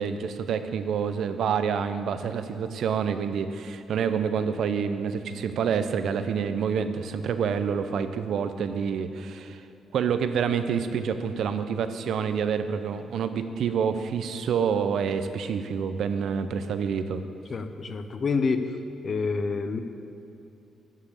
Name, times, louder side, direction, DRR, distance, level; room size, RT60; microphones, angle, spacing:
voice 1, 0.0-9.6 9.9-17.2, right 7 dB, 65° right, 10 dB, 0.7 m, -27 dB
voice 2, 17.5-18.7 19.0-19.8, left 4 dB, 35° left, 9 dB, 0.7 m, -27 dB
13.0 x 5.7 x 8.4 m, 2.7 s
cardioid pair, 145°, 0 cm